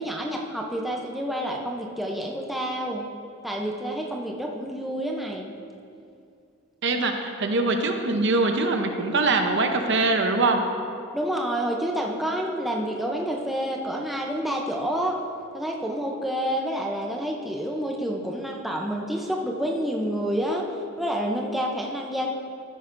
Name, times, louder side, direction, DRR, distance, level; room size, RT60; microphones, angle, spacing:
voice 1, 0.0-3.1 3.4-5.5 11.1-15.2 15.5-22.3, equal, ahead, -1 dB, 0.6 m, -28 dB
voice 2, 6.8-10.6, right 3 dB, 55° right, 5 dB, 0.7 m, -23 dB
13.0 x 9.9 x 2.6 m, 2.4 s
head